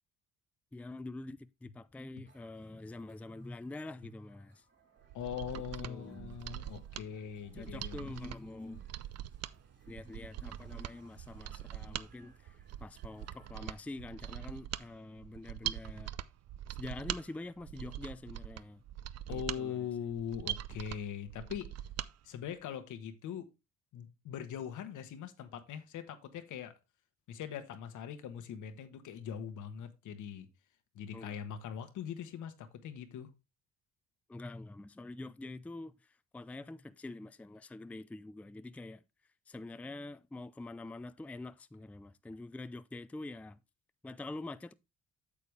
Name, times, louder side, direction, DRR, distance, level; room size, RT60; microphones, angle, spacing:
voice 1, 0.7-4.6 5.5-6.4 7.5-8.8 9.9-16.1 16.8-18.8 19.3-19.9 31.1-31.4 34.3-39.0 39.5-43.6 44.0-44.7, left 2 dB, 5° left, 0.4 m, -46 dB
sound 1, 2.2-13.6, right 3 dB, 40° right, 3.6 m, -66 dB
Mechanisms, 5.0-22.1 22.5-22.6, right 12 dB, 55° right, 0.5 m, -43 dB
voice 2, 5.1-8.1 19.3-21.7 22.2-23.5 23.9-26.7 27.3-30.5 30.9-33.3, left 8 dB, 80° left, 1.3 m, -41 dB
8.5 x 6.8 x 3.3 m
cardioid pair, 90°, 30 cm